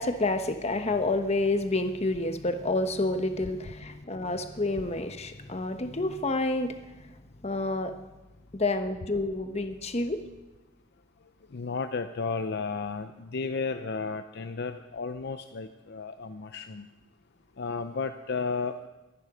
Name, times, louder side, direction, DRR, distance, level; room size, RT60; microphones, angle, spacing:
voice 1, 0.0-7.1 7.4-8.0 8.5-10.2, left 2 dB, 30° left, 7 dB, 1.1 m, -29 dB
voice 2, 11.5-16.9 17.6-18.9, left 4 dB, 55° left, 8 dB, 0.6 m, -33 dB
23.0 x 11.0 x 5.0 m, 1.1 s
head